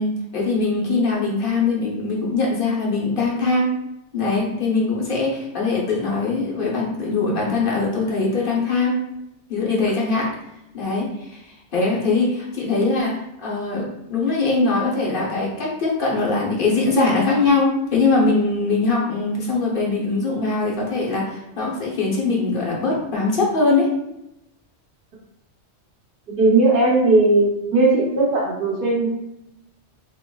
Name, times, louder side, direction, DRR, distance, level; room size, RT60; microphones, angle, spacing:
voice 1, 0.0-3.8 4.1-9.0 9.5-10.3 10.7-23.9, left 3 dB, 50° left, -3 dB, 1.0 m, -22 dB
voice 2, 26.3-29.1, right 2 dB, 60° right, -4 dB, 1.0 m, -17 dB
3.7 x 3.0 x 2.2 m, 0.85 s
omnidirectional pair, 1.2 m